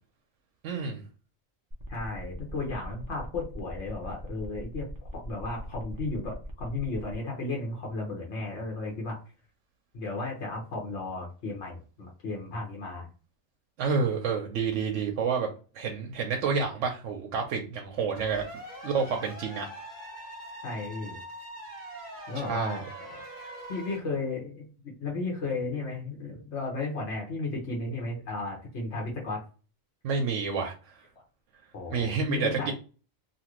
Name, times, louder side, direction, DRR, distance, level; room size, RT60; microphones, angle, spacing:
voice 1, 0.6-1.0 13.8-15.5 15.7-18.5 18.8-19.7 22.4-22.9 30.0-30.7 31.9-32.7, right 5 dB, 85° right, 2 dB, 0.9 m, -29 dB
sound 1, 1.7-7.1, equal, 30° right, 0.3 m, -43 dB
voice 2, 1.9-4.9 5.1-9.2 9.9-13.1 20.6-21.2 22.3-23.2 23.7-29.4 31.7-32.7, left 3 dB, 70° left, -1 dB, 1.2 m, -34 dB
sound 2, 18.1-24.0, right 1 dB, 40° left, 1.2 m, -43 dB
2.8 x 2.5 x 2.9 m, 0.36 s
omnidirectional pair, 1.2 m